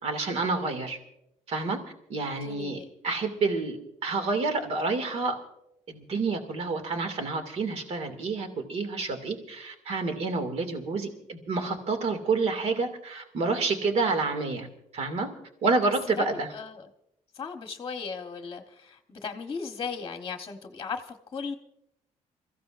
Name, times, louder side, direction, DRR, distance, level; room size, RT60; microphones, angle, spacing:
voice 1, 0.0-1.0 1.5-1.8 2.1-2.8 3.0-5.4 5.9-14.7 14.9-15.3 15.6-16.5, right 3 dB, 60° right, 6 dB, 2.3 m, -28 dB
voice 2, 2.4-2.9 16.2-16.9 17.3-21.5, left 5 dB, 30° left, 5 dB, 1.1 m, -37 dB
28.5 x 15.0 x 2.6 m, 0.82 s
cardioid pair, 135°, 12 cm